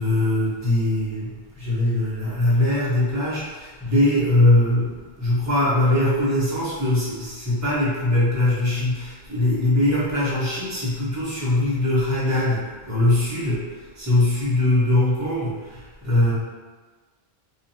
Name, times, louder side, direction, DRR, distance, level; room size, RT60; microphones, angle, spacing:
voice 1, 0.0-16.3, left 1 dB, 15° right, -9 dB, 1.1 m, -21 dB
4.8 x 2.7 x 2.8 m, 1.3 s
omnidirectional pair, 1.1 m